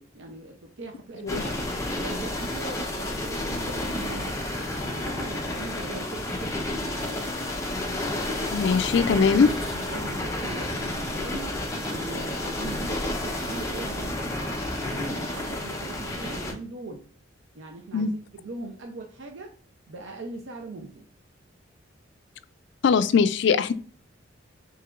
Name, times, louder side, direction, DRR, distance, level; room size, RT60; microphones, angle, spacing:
voice 1, 0.0-1.6 1.9-7.3 9.1-9.3 9.7-17.0 17.5-18.1 18.4-19.5 19.9-21.1, right 3 dB, 80° right, 3 dB, 0.6 m, -40 dB
sound 1, 1.3-16.5, left 1 dB, 15° left, 0.8 m, -31 dB
voice 2, 8.5-9.5 17.9-18.1 22.8-23.7, left 5 dB, 65° left, 13 dB, 0.3 m, -21 dB
4.7 x 3.4 x 2.4 m, 0.44 s
head